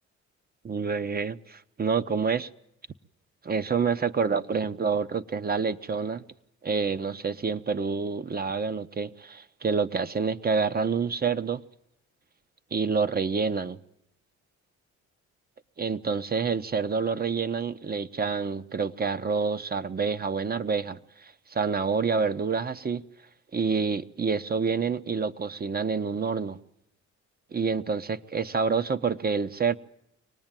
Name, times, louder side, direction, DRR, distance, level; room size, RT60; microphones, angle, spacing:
voice 1, 0.6-2.5 3.4-6.2 6.6-11.6 12.7-13.8 15.8-23.0 23.5-26.6 27.5-29.7, right 5 dB, 30° right, 0.9 m, -28 dB
24.5 x 19.0 x 9.0 m
cardioid pair, 90°, 30 cm